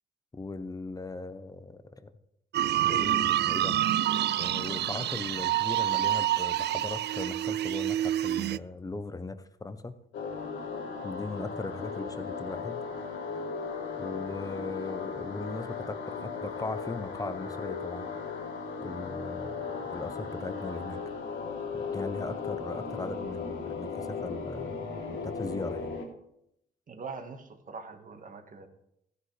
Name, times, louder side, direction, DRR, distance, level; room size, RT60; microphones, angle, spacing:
voice 1, 0.3-2.1 2.8-3.8 4.4-9.9 11.0-12.8 14.0-18.1 18.8-21.0 21.7-26.0, left 3 dB, 20° left, 11 dB, 0.9 m, -38 dB
sound 1, 2.5-8.6, right 13 dB, 60° right, 0.4 m, -27 dB
sound 2, 10.1-26.1, left 5 dB, 80° left, 3.3 m, -36 dB
voice 2, 26.9-28.7, right 4 dB, 40° right, 6 dB, 1.7 m, -42 dB
14.5 x 10.0 x 3.4 m, 0.78 s
cardioid pair, 90°, 20 cm